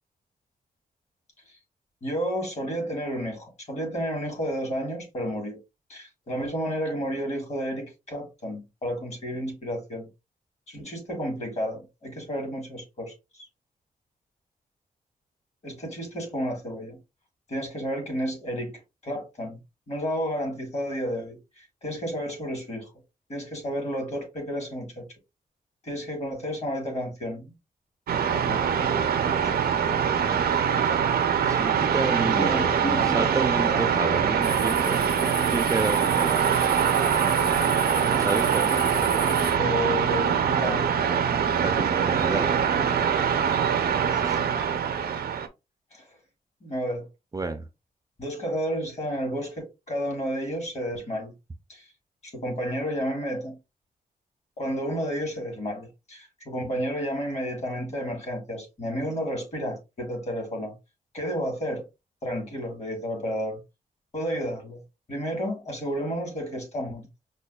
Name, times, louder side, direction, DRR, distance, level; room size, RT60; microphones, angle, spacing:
voice 1, 2.0-5.6 5.9-10.1 10.7-13.5 15.6-17.0 17.5-19.6 19.9-22.9 23.3-25.1 25.8-27.5 28.4-28.6 29.3-29.5 32.0-33.3 34.4-34.5 39.6-40.9 44.1-44.2 45.9-46.0 46.6-47.1 48.2-51.3 51.7-51.9 52.2-53.6 54.6-60.8 61.1-61.8 62.2-63.6 64.1-64.8 65.1-67.1, equal, 45° left, 1.4 m, -31 dB
sound 1, 28.1-45.5, right 7 dB, 80° right, 0.5 m, -23 dB
voice 2, 31.5-32.7 33.0-35.0 35.5-36.4 38.1-38.9 41.6-42.5 44.2-44.4 47.3-47.6, right 3 dB, 20° right, 0.4 m, -30 dB
sound 2, 34.4-39.5, left 3 dB, 70° left, 1.9 m, -36 dB
5.3 x 2.2 x 2.2 m
wide cardioid pair, 165°, 15 cm